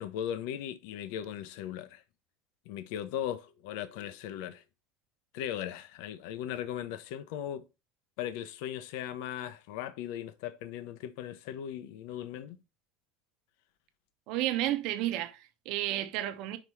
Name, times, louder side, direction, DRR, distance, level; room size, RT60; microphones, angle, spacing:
voice 1, 0.0-2.0 2.7-4.6 5.3-7.6 8.2-12.6, left 10 dB, 75° left, 0.8 m, -38 dB
voice 2, 14.3-16.6, right 14 dB, 65° right, 0.9 m, -32 dB
5.1 x 4.6 x 5.6 m
supercardioid pair, 110°, 0 cm